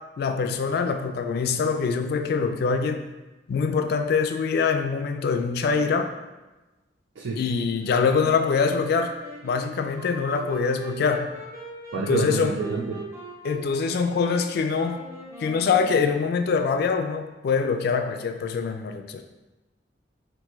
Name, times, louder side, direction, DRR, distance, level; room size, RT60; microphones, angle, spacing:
voice 1, 0.2-3.1 3.5-6.1 7.4-9.1 9.4-11.3 12.0-12.6 13.4-15.0 15.4-19.2, left 5 dB, 60° left, 6 dB, 0.3 m, -24 dB
Wind instrument woodwind instrument, 7.8-16.6, right 2 dB, 15° right, 0.6 m, -41 dB
voice 2, 11.9-13.0, right 4 dB, 90° right, -2 dB, 0.4 m, -28 dB
3.0 x 2.6 x 3.5 m, 1.1 s
head